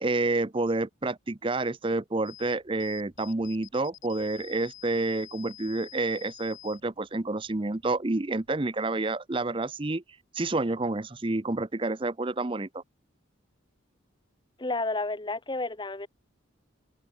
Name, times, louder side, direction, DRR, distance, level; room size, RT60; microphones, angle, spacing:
voice 1, 0.0-10.0 10.3-12.8, right 2 dB, 25° right, 0.7 m, -29 dB
sound 1, 2.2-8.7, left 13 dB, 80° left, 6.4 m, -50 dB
voice 2, 14.6-16.1, left 2 dB, 25° left, 1.0 m, -31 dB
head